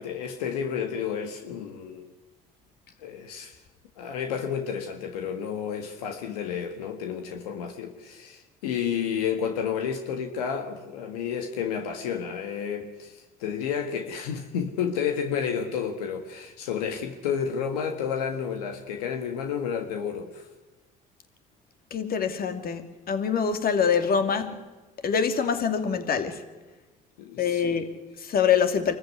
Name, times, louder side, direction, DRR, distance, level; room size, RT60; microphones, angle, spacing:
voice 1, 0.0-2.1 3.0-3.5 4.0-20.4 27.2-27.8, left 7 dB, 90° left, 5 dB, 1.7 m, -31 dB
voice 2, 21.9-24.6 25.0-26.4 27.4-28.9, left 7 dB, 50° left, 7 dB, 2.7 m, -25 dB
25.0 x 14.5 x 9.7 m, 1.2 s
hypercardioid pair, 65°, 19 cm